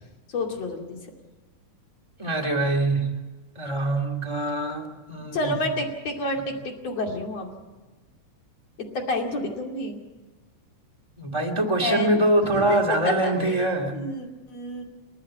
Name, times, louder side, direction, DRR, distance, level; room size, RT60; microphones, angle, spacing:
voice 1, 0.3-1.0 5.3-7.5 8.9-10.0 11.8-12.8 13.0-14.8, left 2 dB, 55° left, 2 dB, 3.6 m, -29 dB
voice 2, 2.2-3.1 3.5-5.5 11.2-14.0, right 2 dB, 10° right, 1 dB, 1.7 m, -24 dB
29.0 x 10.5 x 8.6 m, 1.3 s
omnidirectional pair, 3.5 m